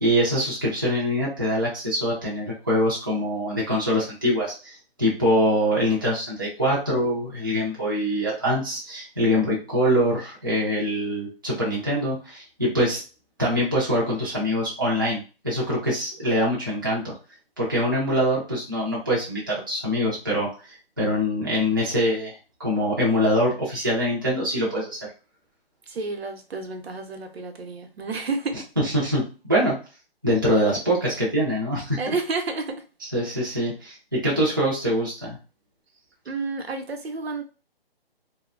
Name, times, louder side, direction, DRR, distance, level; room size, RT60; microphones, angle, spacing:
voice 1, 0.0-13.0 13.4-17.1 17.6-20.5 21.0-25.0 28.8-29.8 30.2-32.0 33.0-35.4, equal, 20° right, 0.4 m, -24 dB
voice 2, 25.9-28.7 32.0-32.8 36.3-37.4, right 3 dB, 80° right, 0.7 m, -30 dB
2.7 x 2.1 x 2.3 m
hypercardioid pair, 170°, 30 cm